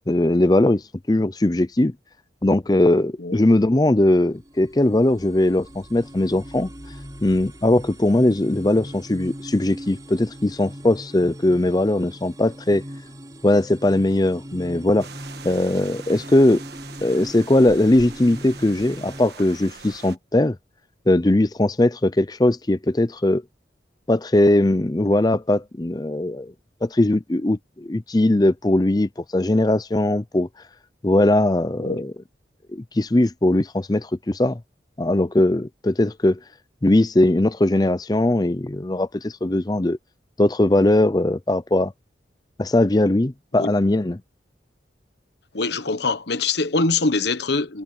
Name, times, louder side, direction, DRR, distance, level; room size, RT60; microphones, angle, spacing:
voice 1, 0.0-1.9 2.4-6.7 7.2-12.8 13.4-15.1 15.4-16.6 17.0-20.6 21.1-23.4 24.1-26.5 26.8-30.5 31.0-32.1 32.7-34.6 35.0-36.4 36.8-40.0 40.4-41.9 42.6-44.2, left 1 dB, 20° left, 0.5 m, -20 dB
sound 1, 4.0-19.3, equal, 20° right, 4.2 m, -40 dB
sound 2, 15.0-20.2, right 5 dB, 60° right, 1.5 m, -42 dB
voice 2, 45.5-47.8, left 3 dB, 65° left, 1.1 m, -23 dB
head